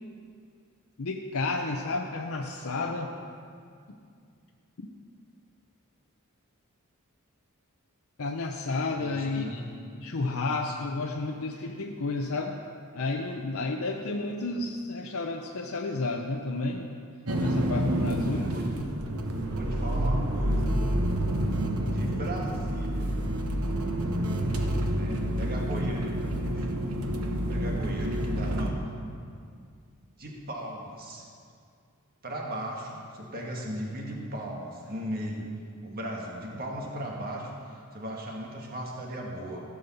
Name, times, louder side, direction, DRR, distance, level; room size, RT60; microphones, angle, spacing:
voice 1, 1.0-3.3 4.8-4.9 8.2-9.6 9.9-12.6 12.9-16.9 17.4-18.4, left 3 dB, 65° left, 1 dB, 0.7 m, -31 dB
voice 2, 9.0-9.6 18.3-18.7 19.5-20.7 21.8-23.1 24.3-24.6 24.9-26.7 27.5-28.8 30.2-31.2 32.2-35.4 35.8-39.6, equal, 45° right, -1 dB, 1.6 m, -37 dB
sound 1, 17.3-28.7, right 1 dB, 70° right, 1.1 m, -28 dB
15.5 x 5.4 x 7.0 m, 2.2 s
head